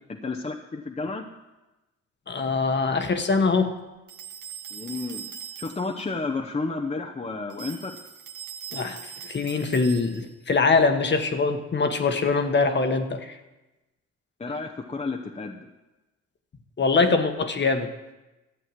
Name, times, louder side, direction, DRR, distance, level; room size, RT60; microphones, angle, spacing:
voice 1, 0.1-1.2 4.7-5.2 5.6-8.0 14.4-15.6, left 3 dB, 20° left, 2 dB, 0.9 m, -31 dB
voice 2, 2.3-3.8 8.7-13.4 16.8-18.1, left 4 dB, 35° left, 7 dB, 1.3 m, -23 dB
sound 1, 4.1-6.0 7.5-10.4, right 8 dB, 80° right, 1.5 m, -41 dB
13.5 x 7.7 x 7.5 m, 1.1 s
cardioid pair, 90°, 30 cm